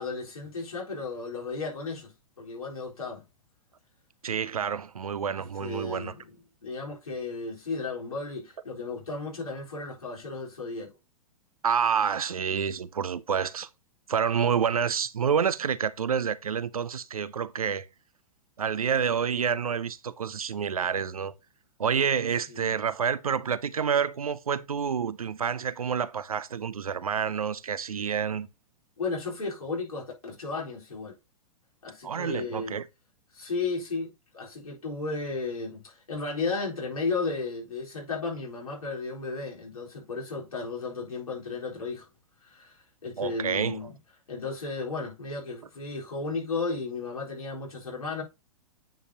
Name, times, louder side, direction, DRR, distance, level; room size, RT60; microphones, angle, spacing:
voice 1, 0.0-3.2 5.6-6.3 6.6-10.9 22.5-22.7 29.0-31.2 31.8-32.8 33.3-42.1 42.4-44.0 44.3-48.2, left 3 dB, 85° left, 4.1 m, -34 dB
voice 2, 4.2-6.1 11.6-13.7 14.1-17.9 18.6-21.3 21.8-28.5 32.0-32.9 43.2-43.8, right 7 dB, 85° right, 0.7 m, -28 dB
9.2 x 5.3 x 2.8 m
hypercardioid pair, 110°, 18 cm